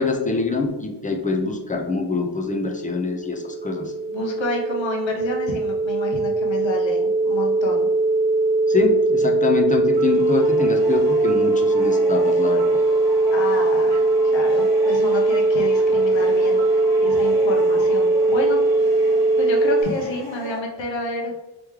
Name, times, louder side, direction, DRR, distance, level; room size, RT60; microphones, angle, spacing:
voice 1, 0.0-3.9 8.7-12.6, left 4 dB, 20° left, 2 dB, 0.4 m, -24 dB
sound 1, 2.8-19.8, right 2 dB, 10° right, 0.8 m, -20 dB
voice 2, 4.1-7.9 13.3-14.0 14.3-18.6 19.4-21.3, left 1 dB, 80° left, 1 dB, 0.9 m, -29 dB
sound 2, 9.9-20.6, right 1 dB, 55° right, 1.4 m, -37 dB
3.2 x 3.0 x 3.5 m, 1.1 s
wide cardioid pair, 120°, 45 cm